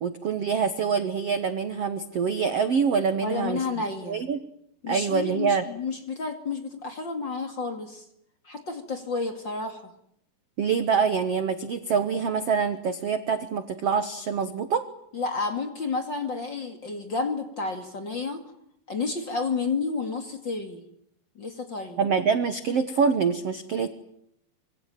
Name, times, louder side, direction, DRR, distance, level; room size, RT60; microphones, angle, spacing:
voice 1, 0.0-3.6 4.1-4.4 4.9-5.6 10.6-14.9 22.0-23.9, right 6 dB, 70° right, 10 dB, 1.4 m, -25 dB
voice 2, 3.2-4.2 4.8-8.0 8.4-9.9 15.1-18.4 18.9-20.8 21.4-22.0, left 4 dB, 35° left, 6 dB, 2.2 m, -31 dB
26.0 x 24.5 x 9.1 m, 0.73 s
omnidirectional pair, 4.9 m